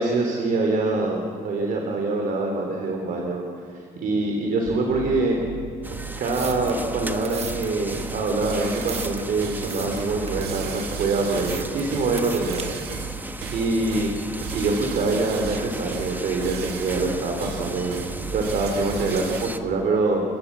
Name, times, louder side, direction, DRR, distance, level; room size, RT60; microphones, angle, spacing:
voice 1, 0.0-3.4 3.7-5.4 6.2-12.7 13.1-14.1 14.5-20.2, right 3 dB, 55° right, 2 dB, 3.5 m, -25 dB
sound 1, 4.7-19.5, right 5 dB, 75° right, 2.3 m, -35 dB
sound 2, 5.8-19.6, right 2 dB, 10° right, 1.3 m, -36 dB
sound 3, 6.1-12.6, right 6 dB, 40° right, 1.6 m, -40 dB
28.0 x 21.0 x 7.5 m, 2.3 s
cardioid pair, 110°, 17 cm